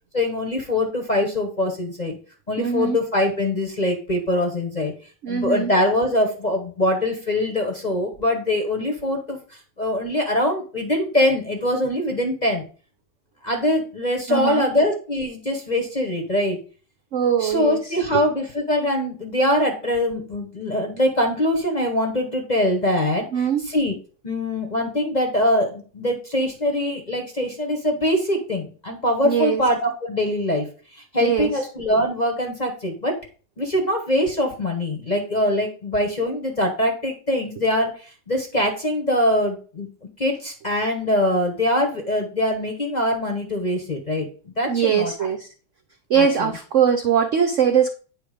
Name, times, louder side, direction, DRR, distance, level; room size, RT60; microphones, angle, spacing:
voice 1, 0.1-2.2 2.5-4.9 5.3-12.6 13.4-16.6 17.4-23.9 24.2-30.6 30.9-33.1 33.6-39.9 40.2-44.3 44.6-45.3 46.1-46.3, left 1 dB, 30° left, 1 dB, 0.8 m, -23 dB
voice 2, 2.6-3.0 5.2-5.7 14.3-14.7 17.1-18.2 23.3-23.7 29.2-29.6 31.2-31.5 44.7-45.5 46.1-47.9, right 8 dB, 80° right, 6 dB, 0.6 m, -21 dB
9.1 x 3.3 x 4.9 m, 0.39 s
omnidirectional pair, 2.1 m